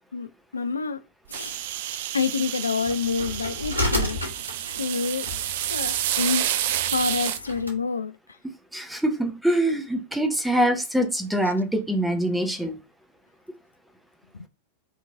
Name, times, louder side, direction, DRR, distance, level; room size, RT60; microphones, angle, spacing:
voice 1, 0.1-1.0 1.3-1.5 2.1-4.2 4.7-5.3 5.7-6.5 6.9-8.1 14.3-14.5, left 5 dB, 75° left, 0.4 m, -27 dB
sound 1, 1.3-7.4, right 12 dB, 55° right, 0.4 m, -29 dB
sound 2, 2.8-7.8, left 1 dB, 80° right, 1.4 m, -32 dB
voice 2, 8.7-12.8, right 1 dB, 5° right, 0.9 m, -24 dB
4.6 x 3.0 x 3.6 m
figure-of-eight pair, 90°, 0 cm